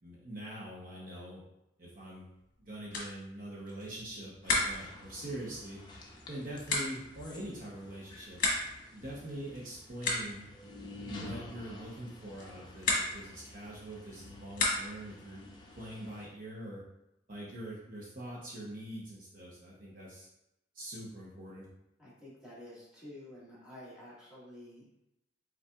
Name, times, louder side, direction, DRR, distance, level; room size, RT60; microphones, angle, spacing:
voice 1, 0.0-1.4 1.8-2.3 2.6-5.8 6.3-8.4 8.9-10.5 11.1-15.4 15.7-16.8 17.3-20.3 20.7-21.7, right 1 dB, 45° right, -4 dB, 0.8 m, -43 dB
sound 1, 2.4-15.2, left 2 dB, 45° left, 1.1 m, -37 dB
sound 2, 4.4-16.3, left 2 dB, 25° left, 0.6 m, -51 dB
voice 2, 22.0-25.1, left 1 dB, 5° right, -8 dB, 1.5 m, -50 dB
5.5 x 3.9 x 2.3 m, 0.87 s
head